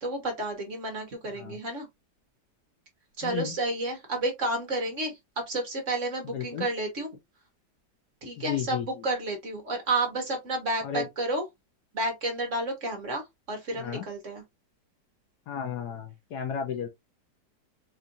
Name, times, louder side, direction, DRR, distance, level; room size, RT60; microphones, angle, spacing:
voice 1, 0.0-1.9 3.2-7.1 8.2-11.4 11.9-14.4, right 2 dB, 45° right, 1.3 m, -31 dB
voice 2, 3.2-3.5 6.3-6.7 8.4-9.1 10.8-11.1 13.8-14.1 15.5-16.9, left 8 dB, 70° left, 1.1 m, -33 dB
4.3 x 2.5 x 2.6 m
omnidirectional pair, 2.0 m